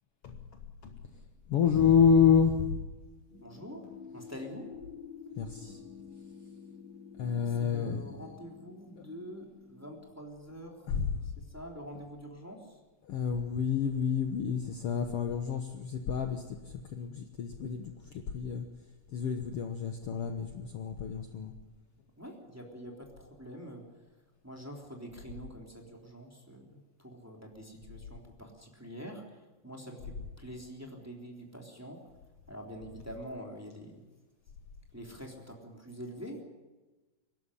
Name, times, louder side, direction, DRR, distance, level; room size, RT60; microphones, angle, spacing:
voice 1, 0.2-1.2 1.5-2.8 5.4-5.8 7.2-8.0 10.9-11.3 13.0-18.6 19.1-21.5, left 7 dB, 80° left, 5 dB, 1.3 m, -29 dB
sound 1, 3.3-9.9, left 6 dB, 45° left, 6.7 m, -50 dB
voice 2, 3.4-4.7 7.4-10.9 11.2-12.8 22.2-23.9 24.4-32.0 32.5-34.1 34.9-36.4, equal, 5° right, 0 dB, 2.7 m, -46 dB
23.5 x 12.5 x 9.9 m, 1.2 s
omnidirectional pair, 4.4 m